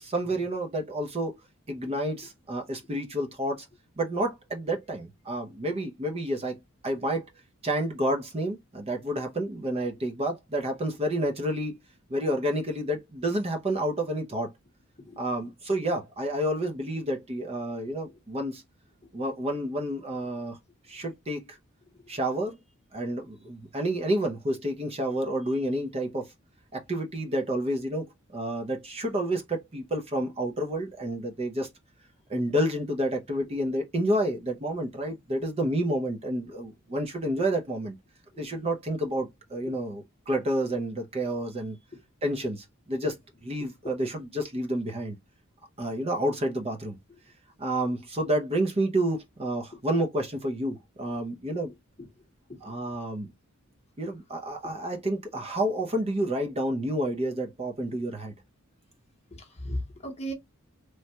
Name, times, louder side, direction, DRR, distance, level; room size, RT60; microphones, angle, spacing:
voice 1, 0.0-1.4 1.7-3.7 4.0-7.3 7.6-11.8 12.1-14.5 15.2-18.6 19.1-20.6 20.9-21.6 22.1-22.6 22.9-26.3 26.7-31.7 32.3-38.0 38.4-41.8 42.2-43.1 43.5-45.2 45.8-47.0 47.6-51.7 52.6-53.3 54.0-58.3, right 1 dB, 30° right, 0.5 m, -29 dB
voice 2, 15.0-15.5 18.0-18.2 19.0-19.2 21.9-22.1 38.3-38.5 39.7-39.8 41.9-42.3 43.0-43.1 43.6-43.9 47.1-47.2 49.7-49.8 51.1-51.3 52.0-52.2 52.5-53.0 54.6-54.7 59.3-60.3, equal, 30° left, 0.8 m, -40 dB
3.1 x 2.2 x 2.7 m
head